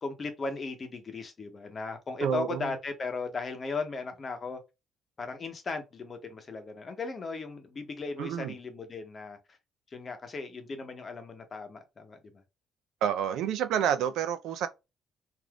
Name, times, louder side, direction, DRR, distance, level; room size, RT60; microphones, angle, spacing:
voice 1, 0.0-4.6 5.2-9.6 9.9-12.4, left 4 dB, 35° left, 0.8 m, -37 dB
voice 2, 2.2-2.7 8.2-8.5 13.0-14.7, right 9 dB, 85° right, 0.5 m, -29 dB
3.4 x 2.6 x 2.3 m
cardioid pair, 125°, 0 cm